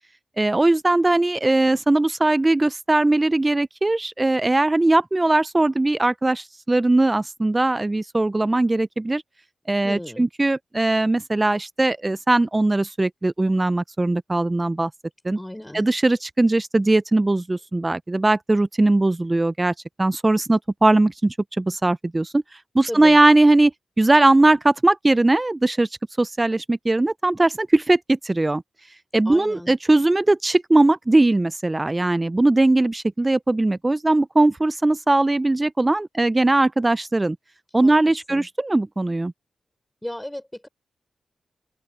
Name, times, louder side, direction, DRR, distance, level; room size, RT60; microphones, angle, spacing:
voice 1, 0.4-9.2 9.7-14.9 15.2-15.4 15.7-23.7 24.0-25.9 26.2-28.6 29.1-37.4 37.7-39.3, right 2 dB, 25° right, 0.4 m, -20 dB
voice 2, 9.8-10.3 15.3-15.8 22.9-23.2 29.2-29.7 37.8-37.9 38.3-38.5 40.0-40.7, left 1 dB, 10° left, 5.7 m, -34 dB
open air
cardioid pair, 55°, 0 cm